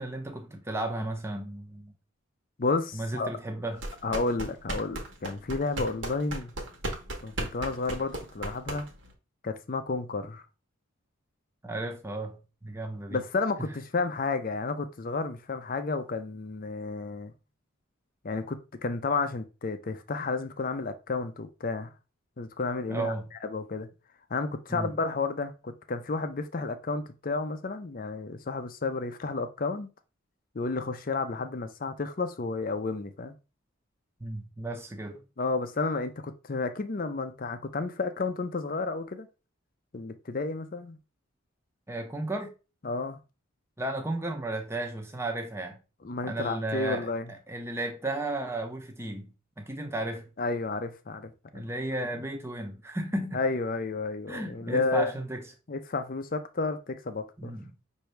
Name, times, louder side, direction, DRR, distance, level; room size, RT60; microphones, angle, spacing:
voice 1, 0.0-1.9 2.9-3.8 11.6-13.2 22.9-23.3 24.7-24.9 34.2-35.2 41.9-42.5 43.8-45.7 46.2-49.3 49.6-50.3 51.5-53.4 54.3-55.5 57.4-57.7, right 2 dB, 10° right, 0.6 m, -34 dB
voice 2, 2.6-3.3 4.0-6.5 7.2-8.9 9.4-10.4 13.1-17.3 18.2-21.9 22.4-23.9 24.3-29.9 30.5-33.4 35.4-39.3 39.9-41.0 42.8-43.2 46.0-47.3 50.4-51.6 53.3-55.1 55.7-57.5, left 3 dB, 40° left, 0.5 m, -31 dB
sound 1, 3.8-9.1, right 1 dB, 65° right, 1.1 m, -36 dB
5.7 x 2.7 x 3.2 m
head